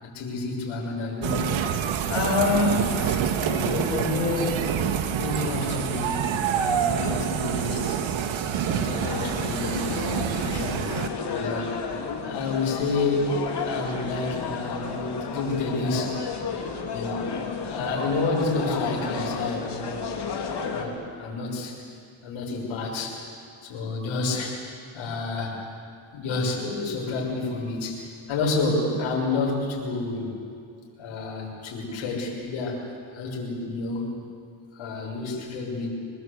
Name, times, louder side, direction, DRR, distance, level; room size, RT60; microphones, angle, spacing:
voice 1, 0.0-1.5 2.1-4.6 5.2-8.0 8.6-11.0 11.4-11.7 12.2-16.2 16.9-17.3 17.6-20.1 20.7-21.8 22.2-23.2 23.6-25.6 26.1-30.3 31.0-32.8 33.1-34.1 34.7-35.9, left 3 dB, 85° left, -2 dB, 6.3 m, -29 dB
sound 1, 1.2-11.1, right 8 dB, 75° right, 1.7 m, -27 dB
sound 2, 9.0-20.8, left 5 dB, 55° left, 3.4 m, -32 dB
25.5 x 22.0 x 8.2 m, 2.4 s
cardioid pair, 105°, 47 cm